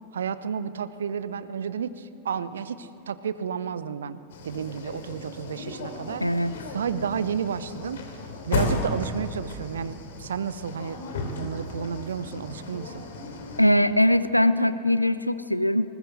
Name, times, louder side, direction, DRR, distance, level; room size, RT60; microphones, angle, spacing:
voice 1, 0.1-13.0, right 7 dB, 65° right, 15 dB, 0.8 m, -32 dB
sound 1, 4.3-13.6, left 3 dB, 60° left, 3.0 m, -34 dB
voice 2, 6.2-6.6 13.6-15.9, left 1 dB, 90° left, 14 dB, 0.7 m, -21 dB
20.0 x 19.5 x 8.1 m, 2.6 s
figure-of-eight pair, 90°, 0 cm